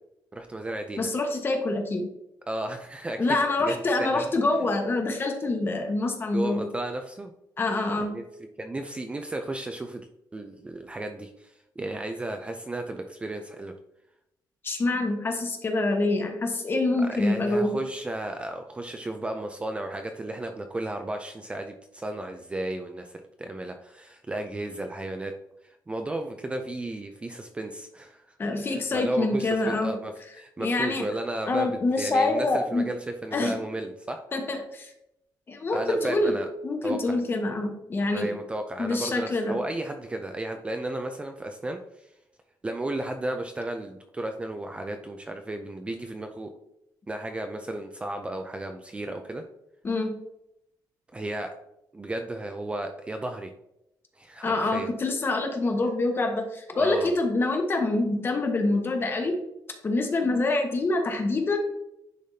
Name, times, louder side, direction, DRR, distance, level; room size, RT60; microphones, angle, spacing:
voice 1, 0.3-1.1 2.5-4.3 6.3-7.3 8.0-8.2 8.6-13.7 17.1-25.4 25.6-28.4 28.7-34.2 35.7-36.5 36.8-37.2 38.1-42.1 42.6-46.5 47.1-49.4 51.1-51.5 51.9-53.5 54.2-54.9 56.7-57.1, right 1 dB, 15° right, 5 dB, 0.4 m, -34 dB
voice 2, 1.0-2.1 3.2-6.7 7.6-8.2 14.6-17.8 28.4-30.0 30.6-31.1 31.5-32.9 33.3-33.5 34.3-34.9 35.5-36.4 36.6-38.3 38.8-39.6 49.8-50.2 54.4-59.4 59.8-61.6, left 2 dB, 30° left, 4 dB, 1.1 m, -26 dB
10.0 x 3.4 x 2.7 m, 0.84 s
cardioid pair, 145°, 8 cm